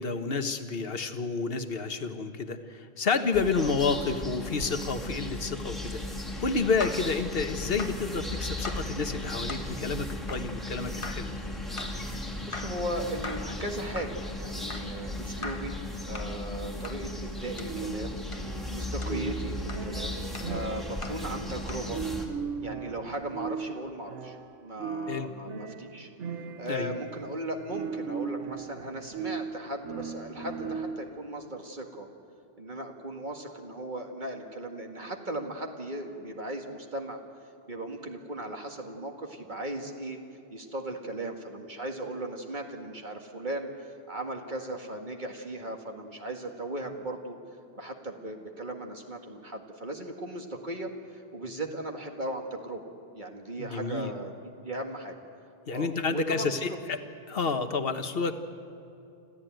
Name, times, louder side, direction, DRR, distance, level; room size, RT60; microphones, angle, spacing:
voice 1, 0.0-6.0 6.4-11.3 25.1-25.3 26.7-26.9 53.6-54.1 55.7-57.0 57.3-58.4, left 4 dB, 55° left, 8 dB, 1.4 m, -30 dB
sound 1, 3.3-22.3, left 1 dB, ahead, 2.2 m, -36 dB
sound 2, 5.0-7.1 7.8-8.1 8.6-8.9 9.5-9.7 10.3-10.5 11.0-11.3 11.8-12.0 12.5-12.8 13.2-13.6 13.9-14.2 14.7-15.0 15.4-15.7 16.1-16.4 16.8-17.0 17.6-17.8 18.3-18.5 19.0-19.2 19.7-19.9 20.3-20.6 21.0-21.3 21.7-21.9, left 3 dB, 25° left, 1.4 m, -41 dB
voice 2, 12.5-15.7 16.0-18.2 18.7-22.0 22.6-26.1 26.6-32.1 32.6-37.2 37.7-40.2 40.5-47.4 47.8-55.2 55.7-56.8, right 1 dB, 40° right, 3 dB, 2.0 m, -37 dB
sound 3, 17.7-31.2, right 6 dB, 75° right, 1.4 m, -38 dB
26.0 x 15.0 x 9.2 m, 2.7 s
omnidirectional pair, 1.2 m